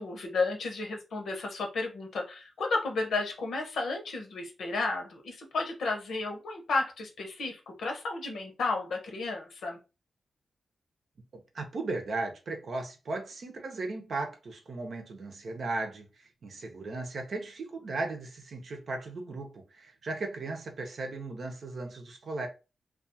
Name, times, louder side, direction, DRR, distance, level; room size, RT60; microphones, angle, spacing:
voice 1, 0.0-9.8, left 3 dB, 80° left, 0.8 m, -32 dB
voice 2, 11.5-22.5, right 3 dB, 65° right, 0.7 m, -36 dB
2.3 x 2.3 x 2.6 m
cardioid pair, 55°, 0 cm